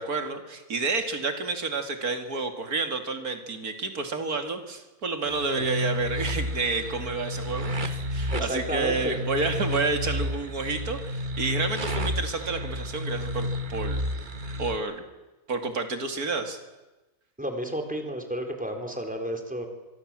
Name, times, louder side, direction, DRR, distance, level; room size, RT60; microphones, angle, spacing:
voice 1, 0.0-14.0 14.4-15.0 15.5-16.6, right 3 dB, 70° right, 6 dB, 3.0 m, -30 dB
sound 1, 5.3-14.8, left 1 dB, 35° right, 1.5 m, -31 dB
voice 2, 8.3-9.2 17.4-19.7, equal, 5° right, 3 dB, 3.9 m, -31 dB
25.0 x 23.0 x 7.6 m, 1.1 s
omnidirectional pair, 1.6 m